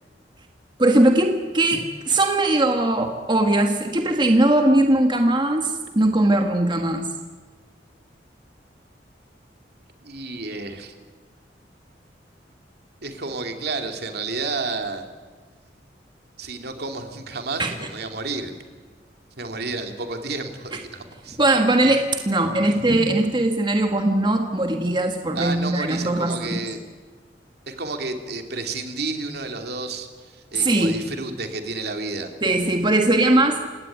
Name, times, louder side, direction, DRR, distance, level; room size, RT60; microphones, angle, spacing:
voice 1, 0.8-7.1 17.6-17.7 20.7-20.8 21.4-26.6 30.5-31.0 32.4-33.6, right 1 dB, 25° right, 4 dB, 1.6 m, -20 dB
voice 2, 10.0-10.9 13.0-15.0 16.4-18.5 19.4-21.4 22.6-22.7 25.3-26.8 27.7-32.3, right 3 dB, 60° right, 5 dB, 2.9 m, -31 dB
28.5 x 17.5 x 9.5 m, 1.4 s
head